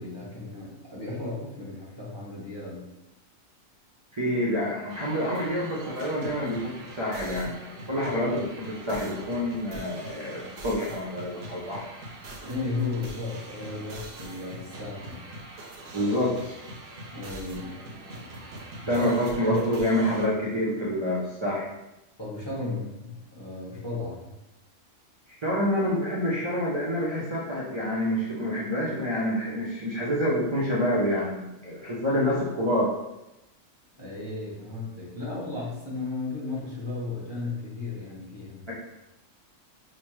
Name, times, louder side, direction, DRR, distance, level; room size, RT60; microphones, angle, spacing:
voice 1, 0.0-2.9 12.4-15.2 17.1-17.8 18.8-19.1 19.4-19.6 22.2-24.3 34.0-38.6, left 3 dB, 20° left, -7 dB, 1.1 m, -35 dB
voice 2, 4.1-7.5 7.9-11.9 15.9-16.5 18.9-21.7 25.4-32.9 38.7-38.8, equal, 40° right, -6 dB, 0.4 m, -27 dB
sound 1, 4.9-20.3, right 1 dB, 60° right, 0.8 m, -43 dB
5.0 x 2.1 x 3.1 m, 0.95 s
omnidirectional pair, 1.4 m